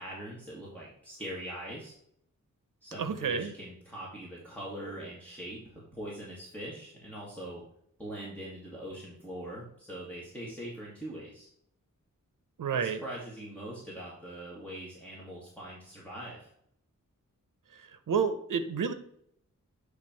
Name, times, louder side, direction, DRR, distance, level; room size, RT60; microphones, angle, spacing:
voice 1, 0.0-1.9 2.8-7.6 8.0-11.5 12.8-16.5, right 1 dB, 5° left, -7 dB, 1.9 m, -42 dB
voice 2, 3.0-3.5 12.6-13.0 17.7-18.9, right 6 dB, 80° right, 10 dB, 0.7 m, -30 dB
8.2 x 3.4 x 4.4 m, 0.70 s
wide cardioid pair, 125°, 31 cm